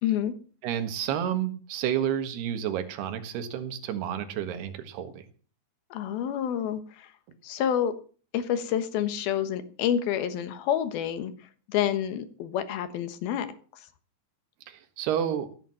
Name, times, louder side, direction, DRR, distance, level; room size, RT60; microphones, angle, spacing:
voice 1, 0.0-0.3 5.9-7.1 7.4-7.9 8.3-11.3 11.7-13.5 13.7-13.9, left 9 dB, 65° left, 11 dB, 2.8 m, -28 dB
voice 2, 0.6-5.2 14.7-15.5, right 10 dB, 70° right, 7 dB, 3.4 m, -30 dB
16.0 x 7.7 x 7.6 m, 0.40 s
omnidirectional pair, 5.1 m